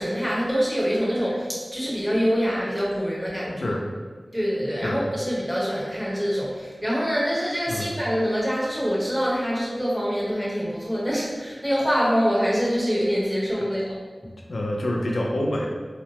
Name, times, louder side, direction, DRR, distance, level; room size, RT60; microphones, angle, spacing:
voice 1, 0.0-3.7 4.3-13.9, equal, ahead, -6 dB, 0.9 m, -25 dB
voice 2, 14.5-15.7, left 1 dB, 90° left, -1 dB, 0.4 m, -26 dB
3.0 x 2.0 x 2.8 m, 1.4 s
wide cardioid pair, 55°, 0 cm